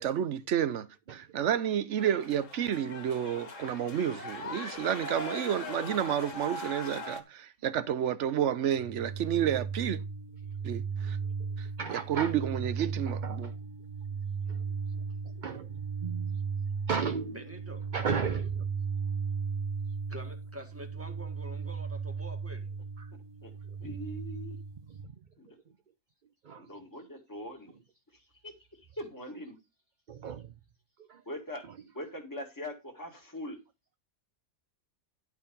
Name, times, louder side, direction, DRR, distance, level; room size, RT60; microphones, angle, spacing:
voice 1, 0.0-10.0 10.6-11.2 11.6-13.5, right 9 dB, 60° right, 1.0 m, -30 dB
sound 1, 2.0-7.2, left 2 dB, 65° left, 1.7 m, -40 dB
sound 2, 8.7-25.0, right 5 dB, 90° right, 2.2 m, -36 dB
voice 2, 11.8-12.3 13.1-13.5 14.5-14.6 14.9-16.4 16.9-17.4 17.9-18.7 23.0-23.1 23.8-24.0 24.9-25.0 26.4-26.7 30.1-30.5 31.1-31.2, right 6 dB, 45° right, 0.7 m, -35 dB
voice 3, 17.3-17.9 20.1-22.7, right 1 dB, 10° right, 1.9 m, -46 dB
voice 4, 23.8-24.6 25.4-25.5 26.6-27.8 28.4-28.5 29.0-29.5 31.3-31.6 31.9-33.6, left 1 dB, 15° left, 2.1 m, -41 dB
11.0 x 4.7 x 5.3 m
omnidirectional pair, 1.5 m